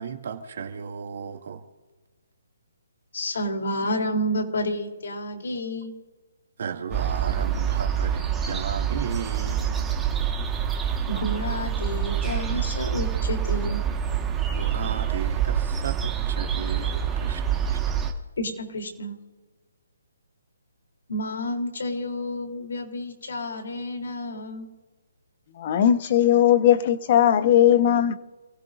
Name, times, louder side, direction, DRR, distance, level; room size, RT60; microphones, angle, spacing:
voice 1, 0.0-1.6 6.6-9.9 14.5-18.0, right 7 dB, 60° right, 2.4 m, -35 dB
voice 2, 3.1-5.9 11.1-13.8 18.4-19.2 21.1-24.7, left 1 dB, 70° left, 3.5 m, -30 dB
sound 1, 6.9-18.1, right 8 dB, 5° right, 1.6 m, -26 dB
voice 3, 25.6-28.1, left 10 dB, 40° left, 1.2 m, -18 dB
29.0 x 16.5 x 2.7 m
hypercardioid pair, 155°, 0 cm